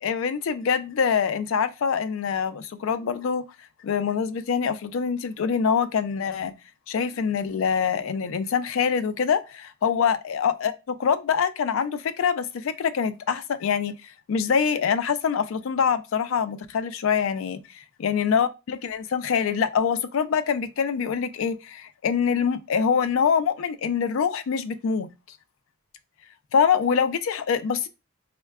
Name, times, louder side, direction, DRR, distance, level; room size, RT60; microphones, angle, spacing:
voice 1, 0.0-3.4 3.8-6.5 6.9-14.0 14.3-17.6 18.0-25.1 26.5-27.9, left 6 dB, 70° left, 0.4 m, -24 dB
5.3 x 2.1 x 2.3 m
head